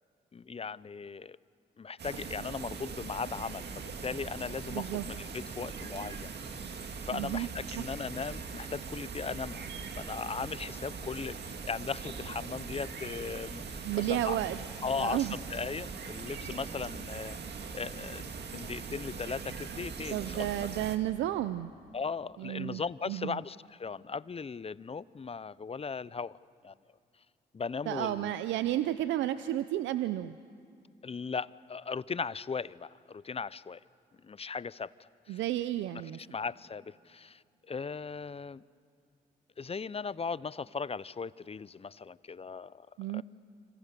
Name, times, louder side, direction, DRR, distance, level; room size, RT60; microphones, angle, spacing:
voice 1, 0.3-1.4 1.8-6.3 7.0-9.7 10.0-14.4 14.8-20.5 21.9-26.4 26.6-26.7 27.5-28.3 31.0-33.8 34.2-35.4 36.2-38.6 39.6-42.9 43.1-43.2, left 5 dB, 35° left, 19 dB, 0.6 m, -38 dB
sound 1, 2.0-21.0, right 5 dB, 65° right, 2.0 m, -41 dB
voice 2, 4.7-5.1 7.1-7.5 7.8-7.9 13.8-14.6 15.0-15.3 20.1-21.7 22.4-23.4 27.9-30.4 35.3-36.2 43.0-43.2, right 13 dB, 90° right, 13 dB, 0.5 m, -32 dB
27.5 x 26.0 x 6.8 m, 2.3 s
supercardioid pair, 55°, 19 cm